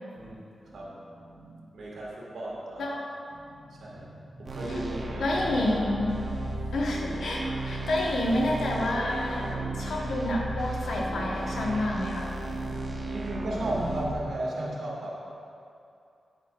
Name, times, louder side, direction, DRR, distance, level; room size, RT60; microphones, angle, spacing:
voice 1, 0.1-3.0 3.3-5.3 6.3-6.4 13.1-15.2, right 1 dB, 75° right, -5 dB, 1.8 m, -35 dB
sound 1, 4.5-14.1, right 2 dB, 40° right, 0.8 m, -34 dB
voice 2, 5.2-6.1 6.7-9.5 9.7-12.3, left 1 dB, 85° left, -2 dB, 1.1 m, -28 dB
8.9 x 8.1 x 2.4 m, 2.6 s
wide cardioid pair, 120°, 0 cm